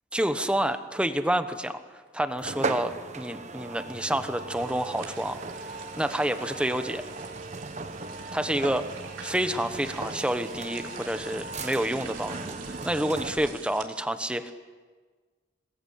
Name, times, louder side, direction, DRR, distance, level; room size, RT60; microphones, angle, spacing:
voice 1, 0.1-1.8 2.1-7.0 8.3-8.9 9.2-14.5, right 1 dB, 5° right, 9 dB, 1.1 m, -29 dB
sound 1, 2.4-13.7, right 3 dB, 35° right, 1.2 m, -37 dB
sound 2, 4.5-13.9, right 7 dB, 70° right, 3.7 m, -47 dB
26.5 x 20.5 x 8.1 m, 1.4 s
head